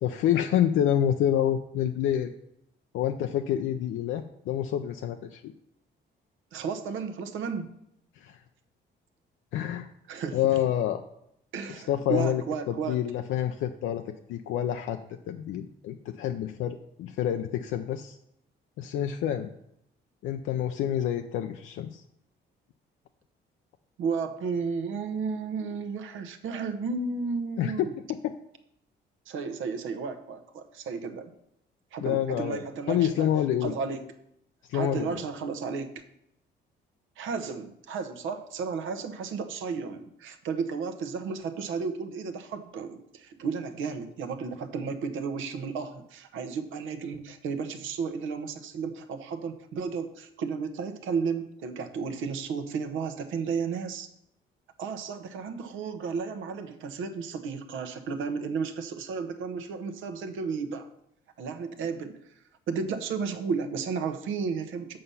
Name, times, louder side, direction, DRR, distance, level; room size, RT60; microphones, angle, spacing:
voice 1, 0.0-2.3 2.9-5.5 8.2-8.4 9.5-9.9 10.3-11.0 11.9-12.4 12.7-18.2 18.8-19.5 20.2-22.0 27.6-28.3 32.0-33.7 34.7-35.2, left 10 dB, 85° left, 6 dB, 0.5 m, -28 dB
voice 2, 6.5-7.7 10.1-10.6 11.5-13.0 24.0-27.9 29.3-31.3 31.9-33.3 33.6-34.1 34.7-36.0 37.2-54.1 54.8-60.9 61.4-62.2 62.7-65.0, right 5 dB, 80° right, 8 dB, 0.9 m, -33 dB
7.7 x 5.6 x 5.5 m, 0.78 s
cardioid pair, 90°, 20 cm